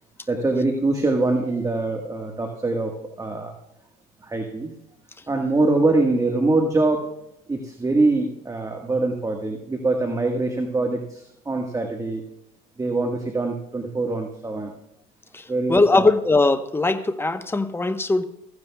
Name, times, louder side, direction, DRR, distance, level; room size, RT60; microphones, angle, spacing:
voice 1, 0.3-2.9 3.2-3.5 4.2-4.7 5.3-7.1 7.5-12.2 12.8-14.7 15.5-16.1, right 2 dB, 15° right, 3 dB, 1.5 m, -23 dB
voice 2, 15.7-18.2, left 3 dB, 10° left, 10 dB, 1.0 m, -20 dB
15.5 x 15.0 x 2.3 m, 0.81 s
supercardioid pair, 85°, 19 cm